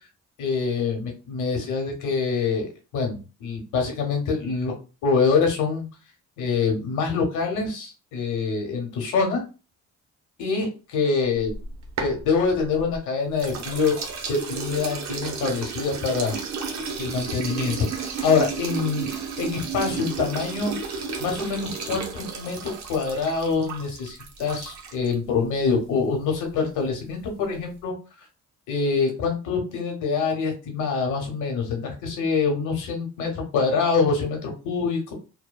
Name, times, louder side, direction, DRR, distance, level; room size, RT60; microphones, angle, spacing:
voice 1, 0.4-4.7 5.0-5.9 6.4-9.4 10.4-11.5 12.0-14.0 14.3-16.4 17.0-19.1 19.4-22.6 22.9-27.9 28.7-35.1, left 5 dB, 85° left, 2 dB, 1.0 m, -25 dB
sound 1, 11.4-13.0 13.4-25.1, right 5 dB, 65° right, 0.7 m, -33 dB
2.6 x 2.2 x 2.2 m, 0.32 s
cardioid pair, 90°, 30 cm